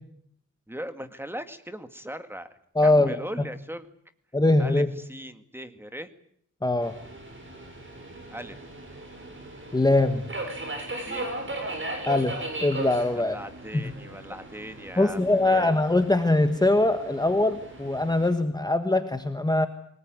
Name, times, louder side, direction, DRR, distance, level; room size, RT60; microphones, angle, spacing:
voice 1, 0.7-2.5 2.8-3.9 4.6-6.1 8.3-8.6 11.1-11.3 13.1-15.8, equal, 5° right, 9 dB, 2.0 m, -39 dB
voice 2, 2.7-3.2 4.3-4.9 6.6-7.0 9.7-10.3 12.1-13.4 13.7-13.8 15.0-19.7, left 2 dB, 15° left, 8 dB, 1.4 m, -22 dB
Subway metro underground, 6.8-18.3, right 2 dB, 40° right, 7.8 m, -38 dB
24.0 x 19.5 x 9.4 m, 0.68 s
wide cardioid pair, 120°, 30 cm